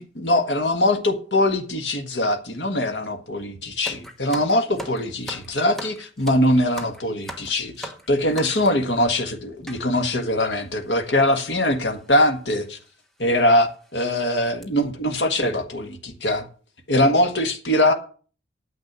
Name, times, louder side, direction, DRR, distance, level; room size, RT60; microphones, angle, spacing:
voice 1, 0.0-12.8 13.2-16.5 16.9-17.9, left 1 dB, 80° left, 1.5 m, -22 dB
sound 1, 3.8-8.9 9.7-9.8 10.6-10.7 10.8-11.0 12.0-12.2 12.7-12.8 13.3-13.4 13.8-14.1 14.4-14.6, right 1 dB, ahead, 1.1 m, -39 dB
9.7 x 7.4 x 6.7 m
head